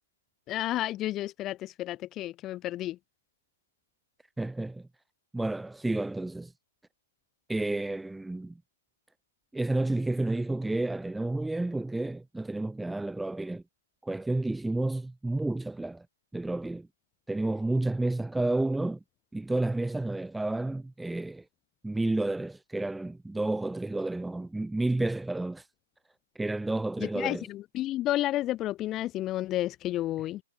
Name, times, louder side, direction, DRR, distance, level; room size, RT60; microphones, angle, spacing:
voice 1, 0.5-3.0 27.0-30.4, left 14 dB, 25° left, 1.9 m, -31 dB
voice 2, 4.4-4.9 5.3-6.5 7.5-8.6 9.5-13.6 14.0-16.1 16.3-16.9 17.3-19.0 19.3-21.4 21.8-25.7 26.3-27.4, right 2 dB, 5° right, 1.0 m, -30 dB
figure-of-eight pair, 115°, 0 cm